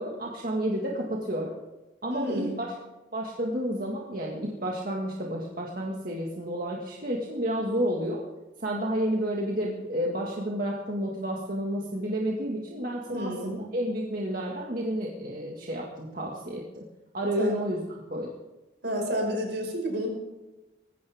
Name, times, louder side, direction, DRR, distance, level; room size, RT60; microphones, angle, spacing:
voice 1, 0.0-1.5 2.0-2.7 3.1-8.2 8.6-16.9 17.1-17.8 18.1-18.3, equal, 50° right, -2 dB, 1.9 m, -30 dB
voice 2, 2.1-2.5 13.1-13.7 17.4-17.6 18.8-20.1, equal, 75° right, 2 dB, 5.2 m, -30 dB
19.5 x 15.5 x 3.6 m, 1.0 s
head